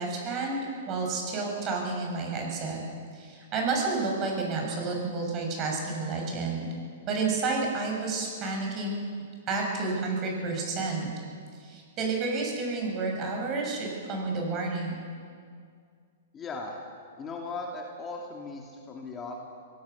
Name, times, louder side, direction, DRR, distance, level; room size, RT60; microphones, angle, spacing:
voice 1, 0.0-2.8 3.1-6.7 7.0-9.0 9.5-11.1 11.6-15.1, right 3 dB, 30° right, 0 dB, 7.3 m, -30 dB
voice 2, 16.3-16.8 17.2-19.4, left 3 dB, 20° left, 0 dB, 2.5 m, -38 dB
23.0 x 17.0 x 7.1 m, 2.1 s
hypercardioid pair, 130°, 0 cm